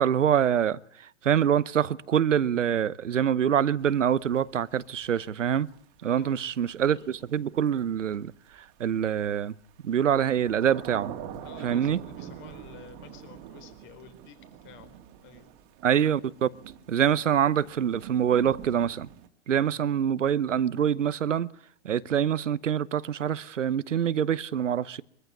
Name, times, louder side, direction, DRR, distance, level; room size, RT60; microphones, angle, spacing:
voice 1, 0.0-5.7 6.0-9.5 9.8-11.1 11.6-12.0 15.8-16.5 16.9-19.1 19.5-21.5 21.8-25.0, right 9 dB, 85° right, 1.0 m, -25 dB
Thunder / Rain, 3.8-19.3, right 10 dB, 35° right, 2.3 m, -45 dB
voice 2, 11.4-14.9 15.2-15.5 19.7-19.9, left 8 dB, 30° left, 4.4 m, -50 dB
23.5 x 15.0 x 9.7 m
hypercardioid pair, 125°, 36 cm